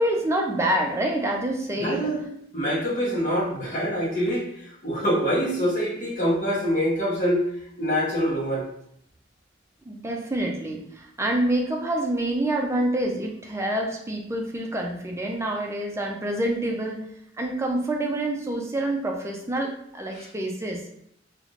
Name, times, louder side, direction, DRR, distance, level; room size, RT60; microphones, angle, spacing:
voice 1, 0.0-2.1 9.8-17.0 17.4-20.8, right 1 dB, 15° right, 1 dB, 0.4 m, -27 dB
voice 2, 1.8-2.2 2.5-4.5 4.8-7.4 7.8-8.6 20.1-20.2, equal, 45° left, -7 dB, 1.0 m, -25 dB
3.2 x 2.5 x 2.5 m, 0.70 s
head